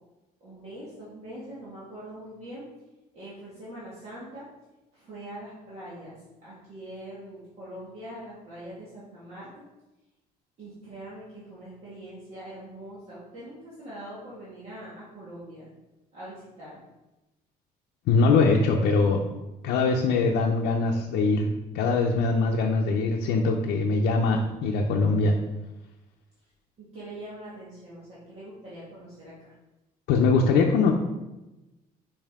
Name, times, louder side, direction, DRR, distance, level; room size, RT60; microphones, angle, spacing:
voice 1, 0.4-2.6 3.1-4.4 4.9-9.5 10.6-15.7 16.1-16.8 26.9-29.5, right 1 dB, 40° right, -9 dB, 1.7 m, -43 dB
voice 2, 18.1-19.3 19.6-21.5 21.7-25.3 30.1-30.9, left 4 dB, 75° left, 0 dB, 0.6 m, -22 dB
5.5 x 4.9 x 3.6 m, 1.0 s
cardioid pair, 175°, 17 cm